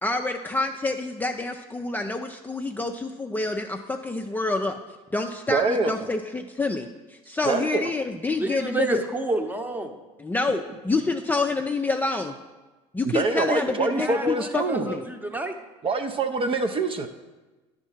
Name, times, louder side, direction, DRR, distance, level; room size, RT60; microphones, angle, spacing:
voice 1, 0.0-4.8 5.1-9.0 10.2-12.4 12.9-15.0, left 3 dB, 10° left, 3 dB, 0.4 m, -27 dB
voice 2, 5.5-5.9 7.5-7.9 13.0-14.9 15.8-17.1, right 3 dB, 35° right, 6 dB, 0.6 m, -25 dB
voice 3, 8.4-9.9 13.9-15.5, right 2 dB, 10° right, 5 dB, 0.9 m, -29 dB
10.0 x 3.7 x 5.7 m, 1.2 s
hypercardioid pair, 75°, 16 cm